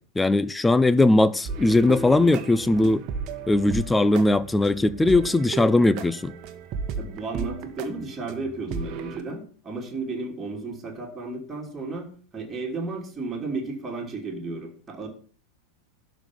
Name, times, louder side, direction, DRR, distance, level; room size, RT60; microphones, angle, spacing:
voice 1, 0.2-3.0 3.5-6.3, left 2 dB, 10° left, 0.6 m, -20 dB
sound 1, 1.4-9.2, right 5 dB, 40° right, 1.3 m, -35 dB
voice 2, 7.0-15.1, right 3 dB, 15° right, 3.0 m, -33 dB
12.0 x 5.1 x 7.2 m
figure-of-eight pair, 90°, 0 cm